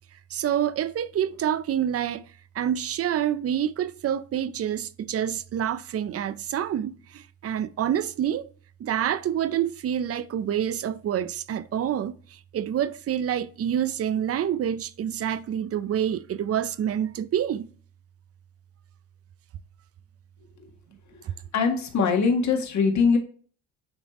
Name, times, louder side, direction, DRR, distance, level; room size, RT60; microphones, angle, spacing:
voice 1, 0.3-2.3 2.5-8.5 8.8-17.7 21.2-21.3, right 10 dB, 40° right, 0.5 m, -27 dB
voice 2, 21.5-23.2, left 5 dB, 50° left, 1.6 m, -22 dB
9.4 x 3.4 x 3.0 m
supercardioid pair, 80°, 36 cm